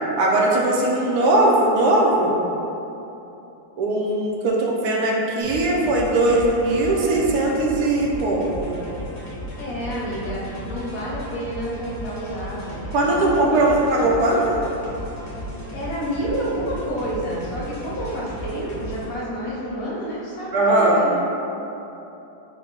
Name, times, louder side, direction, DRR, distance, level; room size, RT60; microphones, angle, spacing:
voice 1, 0.2-2.4 3.8-8.7 12.9-14.6 20.5-21.1, right 2 dB, 80° right, -2 dB, 1.1 m, -19 dB
sound 1, 5.4-19.1, equal, 30° left, 1.1 m, -35 dB
voice 2, 9.6-10.4 10.7-13.9 15.7-21.2, equal, 65° left, -6 dB, 1.1 m, -29 dB
3.7 x 2.2 x 4.4 m, 2.9 s
omnidirectional pair, 1.7 m